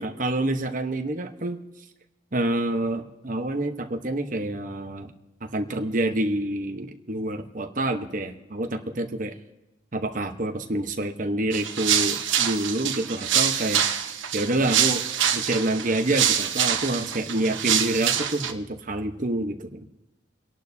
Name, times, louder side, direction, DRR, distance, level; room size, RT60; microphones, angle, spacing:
voice 1, 0.0-1.6 2.3-5.1 5.4-9.3 9.9-13.8 14.3-15.0 15.3-19.8, right 1 dB, 40° right, 6 dB, 1.0 m, -27 dB
sound 1, 11.5-18.5, right 9 dB, 70° right, 1.0 m, -25 dB
30.0 x 11.5 x 2.8 m, 0.99 s
head